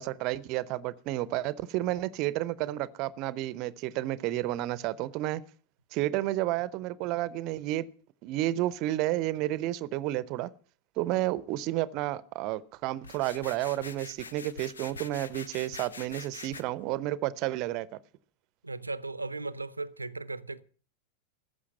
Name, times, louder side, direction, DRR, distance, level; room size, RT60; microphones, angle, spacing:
voice 1, 0.0-5.4 5.9-7.9 8.2-10.5 11.0-17.9, right 15 dB, 40° right, 0.7 m, -31 dB
sound 1, 13.0-16.6, left 4 dB, 70° left, 0.8 m, -44 dB
voice 2, 18.6-20.6, right 3 dB, 80° right, 0.7 m, -36 dB
14.5 x 6.4 x 9.4 m
figure-of-eight pair, 90°, 0 cm